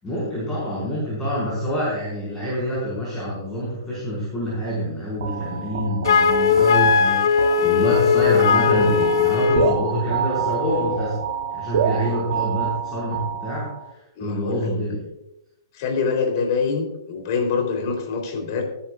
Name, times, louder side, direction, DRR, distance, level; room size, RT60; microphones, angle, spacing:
voice 1, 0.0-11.2 11.5-15.0, equal, 10° left, -8 dB, 5.3 m, -26 dB
sound 1, 5.2-13.9, right 8 dB, 55° right, 1.0 m, -28 dB
Wind instrument woodwind instrument, 6.0-9.8, left 6 dB, 75° left, 0.8 m, -18 dB
voice 2, 14.2-14.7 15.7-18.6, left 5 dB, 45° left, 3 dB, 3.7 m, -25 dB
20.0 x 11.0 x 2.5 m, 0.91 s
hypercardioid pair, 155°, 2 cm